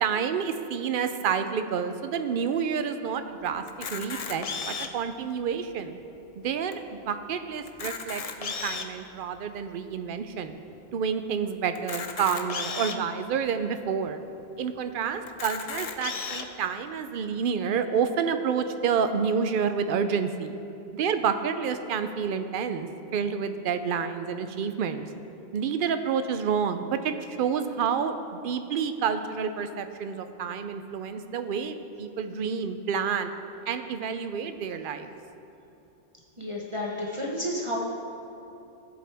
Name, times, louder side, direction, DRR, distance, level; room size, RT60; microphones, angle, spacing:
voice 1, 0.0-6.0 6.4-10.6 10.9-14.2 14.6-20.5 20.9-25.0 25.5-33.3 33.7-35.1, right 6 dB, 60° right, 9 dB, 0.7 m, -29 dB
Camera, 3.7-5.1 5.7-5.8 6.0-6.2 6.7-6.8 7.6-9.0 9.6-9.7 11.7-13.0 13.7-13.8 14.1-14.2 15.3-16.4, left 5 dB, 45° left, 0.5 m, -34 dB
voice 2, 36.4-37.8, equal, 30° right, -4 dB, 1.0 m, -31 dB
13.5 x 7.7 x 3.4 m, 2.9 s
omnidirectional pair, 1.0 m